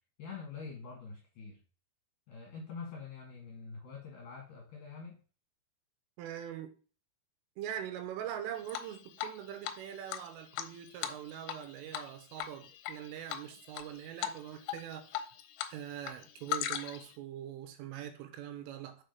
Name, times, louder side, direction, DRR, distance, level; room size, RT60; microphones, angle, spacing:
voice 1, 0.2-1.6 2.3-5.2, left 5 dB, 65° left, 2.2 m, -45 dB
voice 2, 6.2-6.7 7.6-15.3 15.7-19.0, right 10 dB, 80° right, 3.3 m, -43 dB
Drip, 8.7-9.4 9.6-9.7 10.1-11.6 11.9-12.1 12.4-12.9 13.3-13.8 14.2-14.4 14.7-15.7 16.0-17.1, left 11 dB, 80° left, 2.6 m, -37 dB
7.3 x 5.0 x 5.3 m
omnidirectional pair, 6.0 m